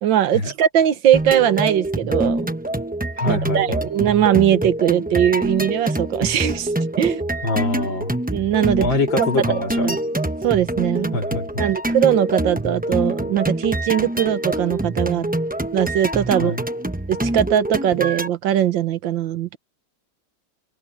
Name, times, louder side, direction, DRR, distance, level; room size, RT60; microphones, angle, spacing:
voice 1, 0.0-2.5 3.3-6.7 7.0-7.2 8.3-8.9 9.2-9.5 9.8-10.0 10.4-11.2 11.6-15.3 15.7-16.6 17.1-19.6, right 10 dB, 85° right, 1.7 m, -20 dB
sound 1, 1.1-18.3, right 1 dB, 15° right, 0.3 m, -25 dB
voice 2, 3.2-3.8 7.4-8.1 8.8-10.0 11.1-11.7 16.3-16.6, left 2 dB, 85° left, 3.6 m, -24 dB
open air
omnidirectional pair, 2.0 m